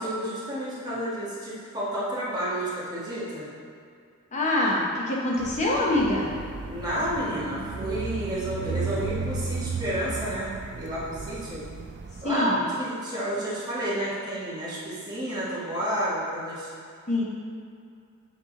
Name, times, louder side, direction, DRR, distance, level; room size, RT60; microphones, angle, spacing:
voice 1, 0.0-3.5 6.7-11.6 12.2-16.7, equal, 20° right, -9 dB, 1.5 m, -30 dB
voice 2, 4.3-6.3 12.2-12.6 17.1-17.2, left 1 dB, 35° left, -4 dB, 1.2 m, -25 dB
sound 1, 5.4-12.3, right 4 dB, 50° right, 0.4 m, -34 dB
9.4 x 3.6 x 3.8 m, 2.3 s
head